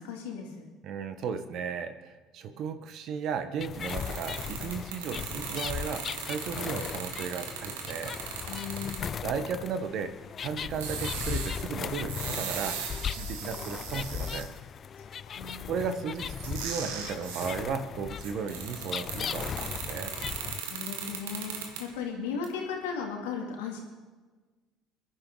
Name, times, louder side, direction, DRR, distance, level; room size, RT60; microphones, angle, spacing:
voice 1, 0.0-0.7 8.5-9.2 15.0-16.0 20.6-23.8, left 6 dB, 85° left, 0 dB, 2.6 m, -37 dB
voice 2, 0.8-8.2 9.2-10.1 10.4-12.8 13.1-14.5 15.7-20.1, right 6 dB, 60° right, 9 dB, 1.2 m, -35 dB
sound 1, 3.6-20.6, left 7 dB, 45° left, 0.4 m, -37 dB
sound 2, 3.8-9.2 10.7-14.5 16.4-17.6 18.2-22.0 22.4-22.5, right 6 dB, 85° right, 1.6 m, -39 dB
23.5 x 11.0 x 4.0 m, 1.3 s
hypercardioid pair, 70°, 0 cm